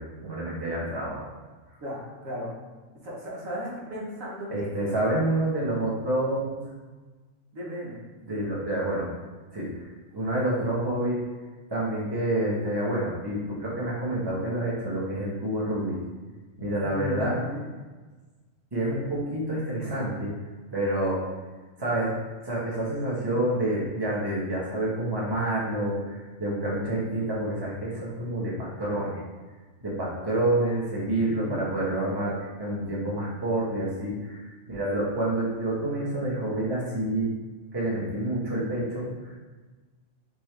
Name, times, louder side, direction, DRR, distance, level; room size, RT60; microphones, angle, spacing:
voice 1, 0.0-1.3 4.5-6.6 8.3-9.1 9.5-9.8 10.1-11.2 11.7-16.0 16.6-17.4 18.7-20.3 20.7-21.2 21.8-22.1 22.4-29.2 29.8-37.3 37.7-39.3, right 1 dB, 20° right, -6 dB, 1.2 m, -28 dB
voice 2, 1.8-2.5 3.0-4.9 7.5-8.5 16.8-17.6 31.2-31.6, equal, 90° right, -5 dB, 1.5 m, -36 dB
5.4 x 3.0 x 3.3 m, 1.3 s
omnidirectional pair, 1.3 m